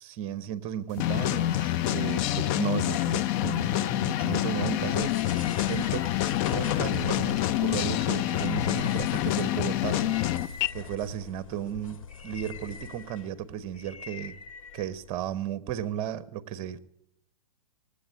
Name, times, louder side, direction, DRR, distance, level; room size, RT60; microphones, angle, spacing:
voice 1, 0.0-6.1 6.5-10.2 10.7-14.3 14.7-16.8, right 10 dB, 35° right, 0.9 m, -35 dB
sound 1, 1.0-10.7, left 14 dB, 35° left, 0.5 m, -27 dB
sound 2, 4.8-15.4, left 6 dB, 70° left, 2.0 m, -43 dB
18.0 x 8.4 x 9.2 m
hypercardioid pair, 125°, 18 cm